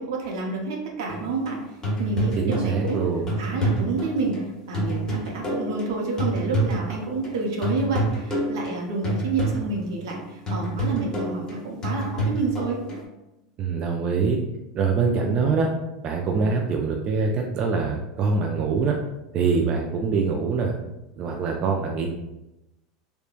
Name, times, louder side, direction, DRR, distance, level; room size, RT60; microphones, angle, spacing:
voice 1, 0.0-1.6 2.0-3.0 3.4-4.4 4.7-12.8, right 3 dB, 75° right, 0 dB, 0.6 m, -29 dB
sound 1, 1.1-7.4 7.6-13.0, right 1 dB, 25° left, 1.0 m, -28 dB
voice 2, 2.4-3.3 13.6-14.4 14.7-15.7 16.0-19.0 19.3-20.7 21.2-22.1, right 4 dB, 40° right, 1 dB, 0.3 m, -24 dB
3.0 x 2.1 x 2.4 m, 0.92 s
supercardioid pair, 110°, 2 cm